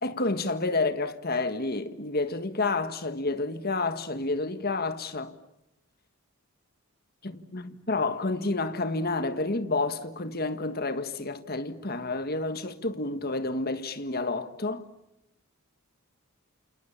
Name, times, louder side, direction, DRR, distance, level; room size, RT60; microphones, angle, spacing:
voice 1, 0.0-5.3 7.2-14.8, left 3 dB, 45° left, 1.6 m, -29 dB
28.5 x 28.5 x 7.3 m
head